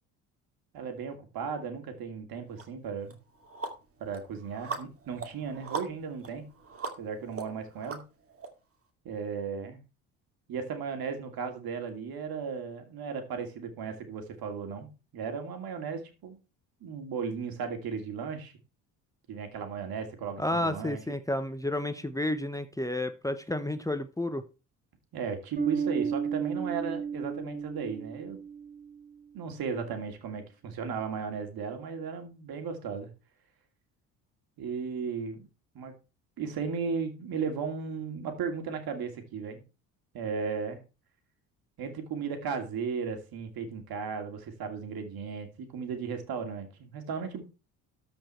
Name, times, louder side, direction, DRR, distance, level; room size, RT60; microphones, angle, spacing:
voice 1, 0.7-3.2 4.0-6.4 7.0-8.0 9.0-9.8 10.5-14.9 15.1-16.4 16.8-18.5 19.3-21.0 25.1-28.4 29.3-33.1 34.6-35.5 35.7-35.9 36.4-39.6 40.1-40.8 41.8-47.4, right 6 dB, 60° right, 6 dB, 2.6 m, -35 dB
sound 1, 2.6-2.7 3.1-8.5, right 4 dB, 35° right, 2.5 m, -40 dB
voice 2, 20.4-24.4, left 1 dB, 10° left, 10 dB, 1.0 m, -31 dB
Bass guitar, 25.6-29.0, right 6 dB, 20° right, 2.6 m, -33 dB
13.0 x 5.2 x 4.4 m, 0.31 s
hypercardioid pair, 65°, 41 cm